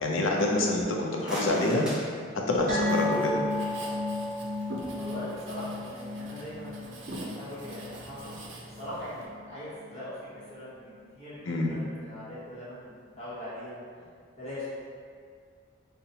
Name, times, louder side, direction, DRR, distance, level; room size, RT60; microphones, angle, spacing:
voice 1, 0.0-1.9 2.5-3.4 11.5-11.8, left 2 dB, 70° left, -1 dB, 0.5 m, -26 dB
sound 1, 1.0-3.0, equal, 5° right, 0.8 m, -40 dB
sound 2, 2.7-9.5 9.8-10.0 10.4-10.5, left 2 dB, 45° right, 0.9 m, -34 dB
Writing, 2.8-9.3, right 1 dB, 65° right, 0.6 m, -43 dB
voice 2, 4.9-10.2 10.5-14.0 14.4-14.7, left 1 dB, 30° left, -11 dB, 0.9 m, -41 dB
5.4 x 2.1 x 2.8 m, 2.1 s
head